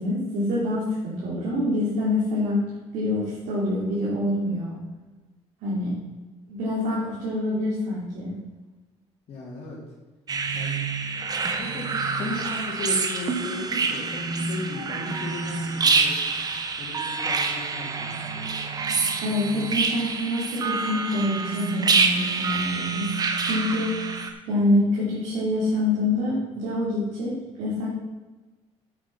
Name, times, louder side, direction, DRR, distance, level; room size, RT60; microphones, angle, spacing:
voice 1, 0.0-2.6 2.9-4.8 5.6-5.9 6.5-8.3 19.2-23.1 23.4-24.0 24.5-27.9, left 1 dB, 85° right, -7 dB, 3.4 m, -26 dB
voice 2, 9.3-9.8 10.5-10.8 11.5-16.1 16.8-18.5, left 3 dB, 50° left, -7 dB, 2.8 m, -36 dB
sound 1, 10.3-24.3, right 4 dB, 30° right, 1.1 m, -27 dB
8.9 x 7.6 x 5.8 m, 1.2 s
cardioid pair, 125°, 12 cm